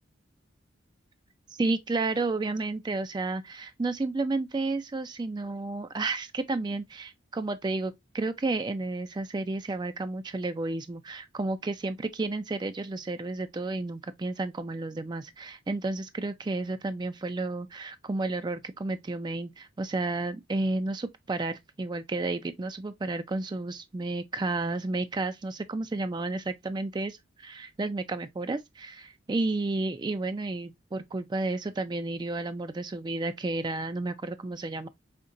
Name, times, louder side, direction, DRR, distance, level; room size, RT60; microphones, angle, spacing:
voice 1, 1.6-34.9, right 2 dB, 20° right, 0.3 m, -32 dB
5.1 x 2.8 x 2.5 m
head